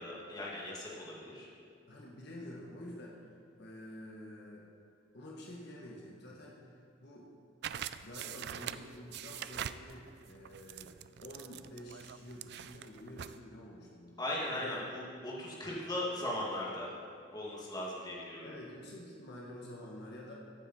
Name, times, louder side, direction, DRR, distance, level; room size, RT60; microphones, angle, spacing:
voice 1, 0.0-1.5 14.2-16.9 17.3-18.5, left 1 dB, 20° left, -5 dB, 2.2 m, -38 dB
voice 2, 1.9-3.3 3.6-4.7 5.1-7.3 8.0-10.9 11.2-14.2 14.5-14.9 17.8-18.0 18.4-20.3, left 1 dB, 60° left, -3 dB, 1.5 m, -48 dB
sound 1, 7.6-13.4, right 10 dB, 60° right, 0.4 m, -44 dB
14.5 x 7.9 x 4.3 m, 2.3 s
head